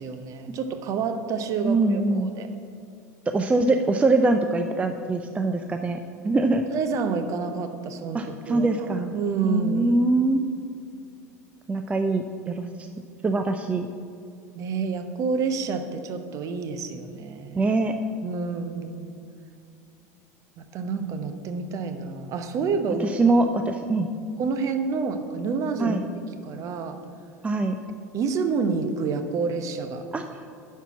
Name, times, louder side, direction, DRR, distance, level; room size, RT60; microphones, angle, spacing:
voice 1, 0.0-2.5 6.7-10.0 14.5-17.7 18.2-19.1 20.6-23.1 24.4-26.0 26.4-27.0 28.1-30.1, right 5 dB, 40° right, 8 dB, 0.9 m, -28 dB
voice 2, 1.6-2.3 3.3-6.0 6.2-6.6 8.1-9.1 9.4-10.5 11.7-12.9 13.2-13.9 17.6-18.0 23.0-24.1 25.8-26.1 27.4-27.8 30.1-30.2, right 2 dB, 15° right, 6 dB, 0.4 m, -23 dB
10.5 x 4.7 x 7.2 m, 2.4 s
figure-of-eight pair, 80°, 9 cm